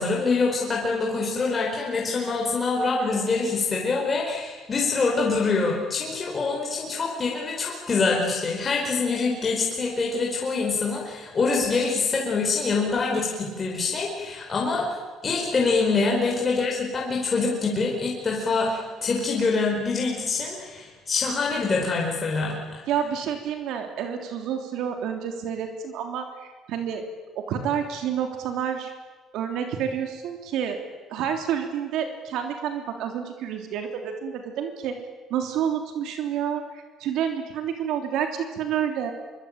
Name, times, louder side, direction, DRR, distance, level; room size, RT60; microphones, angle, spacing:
voice 1, 0.0-14.9 15.2-22.8, left 4 dB, 25° left, -2 dB, 4.7 m, -25 dB
voice 2, 22.9-27.0 27.3-28.9 29.3-30.8 31.1-35.0 35.3-39.1, right 8 dB, 65° right, 5 dB, 3.3 m, -29 dB
25.5 x 23.5 x 8.9 m, 1.3 s
cardioid pair, 160°, 0 cm